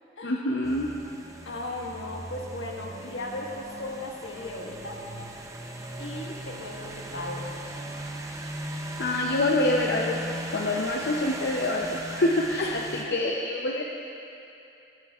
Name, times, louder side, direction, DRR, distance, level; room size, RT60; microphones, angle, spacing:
voice 1, 0.2-0.9 9.0-10.2 10.5-13.8, left 2 dB, 60° left, -1 dB, 0.6 m, -26 dB
sound 1, 0.6-13.0, right 1 dB, 15° right, 0.6 m, -38 dB
voice 2, 1.4-5.0 6.0-7.5 12.6-13.2, left 2 dB, 80° left, -1 dB, 1.5 m, -37 dB
22.5 x 9.7 x 2.4 m, 2.7 s
head